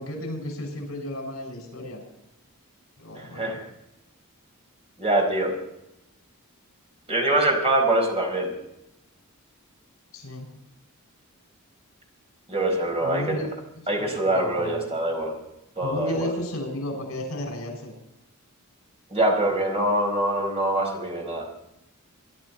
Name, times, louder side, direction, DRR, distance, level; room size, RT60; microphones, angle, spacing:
voice 1, 0.0-2.0 3.0-3.6 10.1-10.5 12.7-12.8 13.0-13.4 13.8-14.9 15.8-17.9, left 1 dB, 70° left, 2 dB, 6.5 m, -33 dB
voice 2, 3.2-3.6 5.0-5.5 7.1-8.5 12.5-13.4 13.9-15.3 15.8-16.3 19.1-21.5, right 1 dB, 25° right, 1 dB, 4.6 m, -24 dB
24.0 x 12.0 x 4.4 m, 0.87 s
head